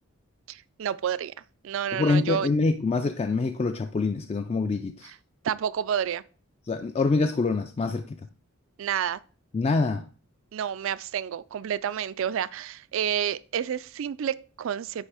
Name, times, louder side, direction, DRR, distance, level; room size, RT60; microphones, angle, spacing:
voice 1, 0.5-1.3 1.6-2.5 5.4-6.2 8.8-9.2 10.5-15.1, right 9 dB, 65° right, 0.3 m, -29 dB
voice 2, 1.9-5.1 6.7-8.3 9.5-10.0, left 3 dB, 30° left, 0.3 m, -25 dB
9.7 x 3.3 x 4.8 m
head